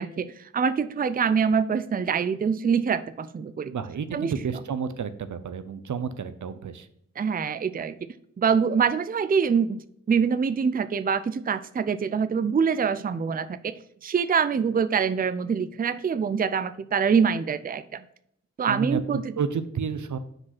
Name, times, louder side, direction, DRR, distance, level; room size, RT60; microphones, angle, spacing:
voice 1, 0.0-3.7 4.1-4.3 7.2-7.9 8.4-9.8 10.1-13.7 14.0-18.0 18.6-19.2, right 6 dB, 30° right, 13 dB, 0.4 m, -25 dB
voice 2, 3.7-6.9 18.7-20.2, right 6 dB, 85° right, 12 dB, 0.7 m, -31 dB
6.2 x 5.0 x 5.9 m, 0.73 s
wide cardioid pair, 85°, 29 cm